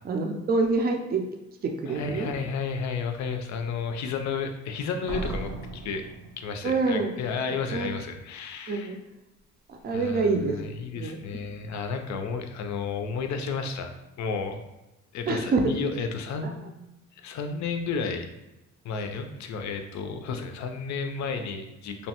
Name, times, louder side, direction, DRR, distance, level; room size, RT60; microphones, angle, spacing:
voice 1, 0.0-1.2 1.6-2.3 6.6-7.1 7.7-7.9 8.7-9.0 9.7-10.6 10.9-11.2 15.3-15.6 16.4-16.5, right 3 dB, 35° right, 3 dB, 0.4 m, -26 dB
voice 2, 1.9-6.0 6.4-9.0 9.9-14.6 15.1-16.7 17.2-18.3 18.8-22.1, left 5 dB, 65° left, 6 dB, 0.5 m, -32 dB
Slam, 5.1-7.0, right 2 dB, 80° right, 0.6 m, -36 dB
2.9 x 2.1 x 2.8 m, 0.97 s
cardioid pair, 90°, 30 cm